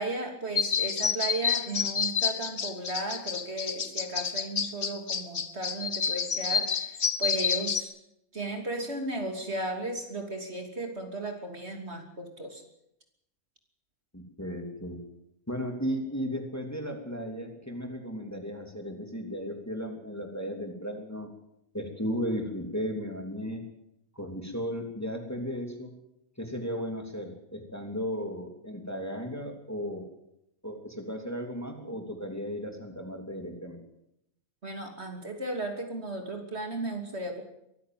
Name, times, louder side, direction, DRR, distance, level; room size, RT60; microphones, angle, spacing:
voice 1, 0.0-7.9 8.3-12.6 34.6-37.4, right 2 dB, 45° right, 4 dB, 3.2 m, -35 dB
sound 1, 0.5-7.8, left 6 dB, 40° left, 1.1 m, -29 dB
voice 2, 14.1-15.0 15.5-21.3 21.7-23.6 24.1-25.9 26.4-30.1 30.6-33.8, equal, 10° left, 3 dB, 3.1 m, -35 dB
23.5 x 15.0 x 7.7 m, 0.81 s
omnidirectional pair, 1.5 m